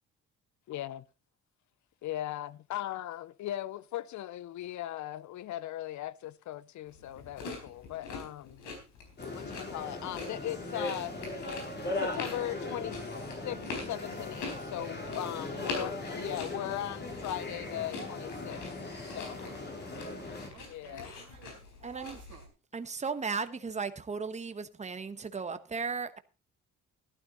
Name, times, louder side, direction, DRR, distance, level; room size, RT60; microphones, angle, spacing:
voice 1, 0.7-1.0 2.0-8.6 9.3-11.3 12.0-13.2 13.4-18.6 19.1-19.4 20.7-21.1, left 13 dB, 70° left, 0.7 m, -38 dB
sound 1, 6.9-22.4, left 3 dB, 85° left, 4.2 m, -45 dB
sound 2, 9.2-20.5, left 2 dB, 35° left, 3.4 m, -39 dB
voice 2, 15.3-15.7 19.5-22.5, right 11 dB, 80° right, 2.3 m, -55 dB
voice 3, 21.8-22.2 22.7-26.2, right 5 dB, 25° right, 1.1 m, -36 dB
12.0 x 12.0 x 3.9 m
cardioid pair, 90°, 30 cm